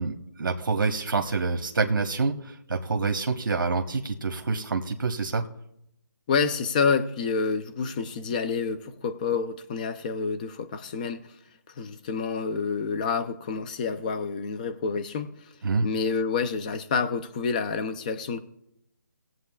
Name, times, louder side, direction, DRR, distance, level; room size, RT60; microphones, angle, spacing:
voice 1, 0.0-5.4 15.6-15.9, right 4 dB, 70° right, 1.1 m, -27 dB
voice 2, 6.3-11.3 11.8-15.5 15.8-18.4, left 5 dB, 20° left, 0.5 m, -28 dB
19.0 x 7.7 x 2.3 m
hypercardioid pair, 160°, 11 cm